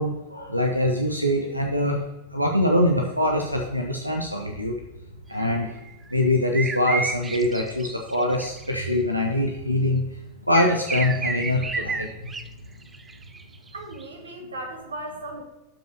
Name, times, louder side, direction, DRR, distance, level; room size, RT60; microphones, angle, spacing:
voice 1, 0.0-2.0 2.3-4.7 5.3-5.7 6.1-10.0 10.5-12.1, left 1 dB, 90° right, 2 dB, 0.8 m, -23 dB
sound 1, 5.4-8.8 10.5-12.5 12.8-14.0, right 4 dB, 15° right, 0.4 m, -31 dB
voice 2, 13.7-15.4, right 1 dB, 70° right, 2 dB, 1.7 m, -36 dB
12.5 x 5.4 x 2.9 m, 1.0 s
figure-of-eight pair, 90°, 0 cm